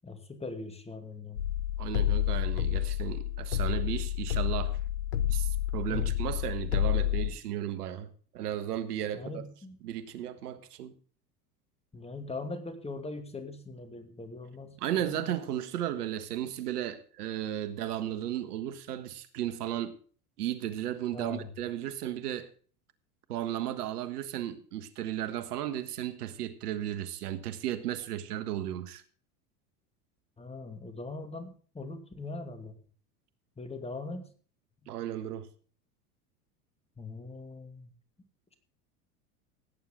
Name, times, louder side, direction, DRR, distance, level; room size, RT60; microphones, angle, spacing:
voice 1, 0.0-1.4 5.9-6.2 9.1-9.8 11.9-15.3 21.1-21.5 30.4-32.8 33.6-34.3 34.8-34.9 37.0-37.9, left 3 dB, 15° left, 2.6 m, -41 dB
sound 1, 1.4-7.3, left 12 dB, 85° left, 1.1 m, -29 dB
voice 2, 1.8-4.8 5.3-9.4 9.8-10.9 14.8-19.9 20.4-22.5 23.3-29.0 34.9-35.5, right 11 dB, 75° right, 1.5 m, -35 dB
17.0 x 9.4 x 3.8 m
hypercardioid pair, 90°, 46 cm